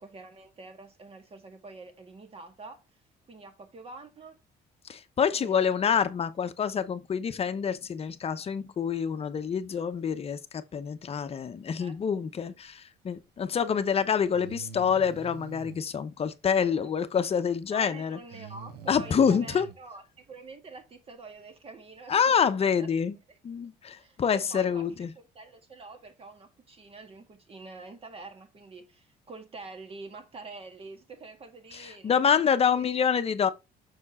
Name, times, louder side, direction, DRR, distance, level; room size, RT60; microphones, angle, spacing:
voice 1, 0.0-2.8 3.3-4.4 5.4-6.0 11.8-11.9 12.5-12.6 16.6-16.9 17.7-22.9 23.3-23.4 24.0-24.9 25.2-32.9, right 3 dB, 35° right, 1.8 m, -46 dB
voice 2, 4.9-18.2 18.9-19.7 22.1-23.2 23.4-25.1 31.7-33.5, left 7 dB, 35° left, 0.8 m, -27 dB
Breathing, 14.3-15.8 18.3-19.8, right 7 dB, 75° right, 1.0 m, -45 dB
6.6 x 4.4 x 4.2 m
cardioid pair, 110°, 17 cm